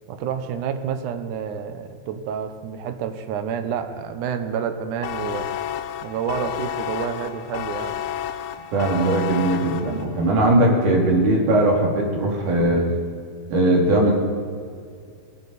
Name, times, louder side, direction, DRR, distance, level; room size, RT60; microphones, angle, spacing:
voice 1, 0.1-5.5 6.0-8.0, right 7 dB, 75° right, 8 dB, 1.9 m, -29 dB
sound 1, 5.0-10.3, left 11 dB, 80° left, 2.4 m, -31 dB
voice 2, 8.7-12.9 13.5-14.2, right 1 dB, 55° right, -2 dB, 3.9 m, -19 dB
24.5 x 9.4 x 4.1 m, 2.2 s
omnidirectional pair, 4.6 m